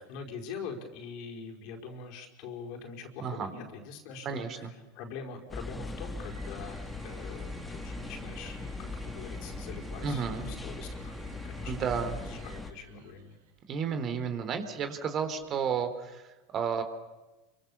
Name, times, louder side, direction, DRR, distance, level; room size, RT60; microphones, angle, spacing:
voice 1, 0.0-13.4, left 5 dB, 55° left, 2 dB, 5.1 m, -44 dB
voice 2, 4.3-4.6 10.0-10.4 11.6-12.1 13.7-16.8, right 6 dB, 40° right, 9 dB, 3.8 m, -32 dB
sound 1, 5.5-12.7, left 2 dB, 10° left, 2.5 m, -40 dB
sound 2, 5.7-14.1 15.3-16.0, right 6 dB, 75° right, 4.5 m, -54 dB
29.5 x 24.5 x 7.2 m, 1.1 s
hypercardioid pair, 85°, 0 cm